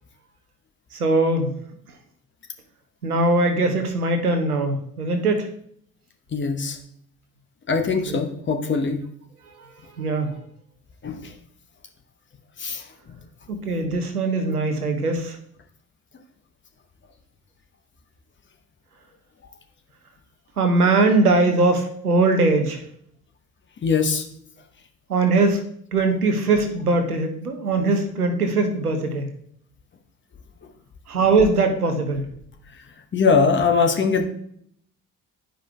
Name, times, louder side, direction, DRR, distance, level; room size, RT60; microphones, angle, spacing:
voice 1, 0.9-1.5 3.0-5.5 8.0-8.2 9.6-10.4 13.5-15.4 20.6-22.8 25.1-25.6 25.9-29.3 31.1-32.3, right 3 dB, 85° right, 6 dB, 0.8 m, -21 dB
voice 2, 6.3-6.8 7.7-9.0 11.0-11.3 12.6-12.8 23.8-24.2 33.1-34.2, left 5 dB, 25° left, 4 dB, 1.0 m, -21 dB
11.0 x 5.0 x 2.3 m, 0.67 s
figure-of-eight pair, 50°, 44 cm